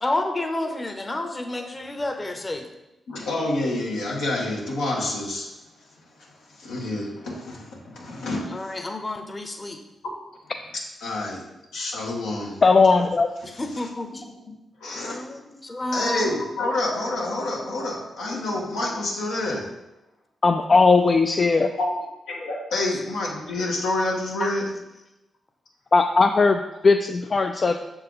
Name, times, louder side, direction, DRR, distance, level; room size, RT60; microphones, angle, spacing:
voice 1, 0.0-2.7 8.5-9.8 13.4-14.2 14.9-16.3 24.4-24.5, left 2 dB, 30° left, 5 dB, 0.9 m, -30 dB
voice 2, 3.1-5.5 6.2-8.8 11.0-11.4 11.7-12.6 13.7-13.9 14.8-15.4 15.9-19.6 21.8-21.9 22.3-24.7, left 2 dB, 85° left, -3 dB, 1.4 m, -28 dB
voice 3, 12.6-13.3 20.4-21.7 25.9-27.8, left 4 dB, 45° left, 5 dB, 0.4 m, -18 dB
6.5 x 4.4 x 3.8 m, 0.96 s
supercardioid pair, 50°, 0 cm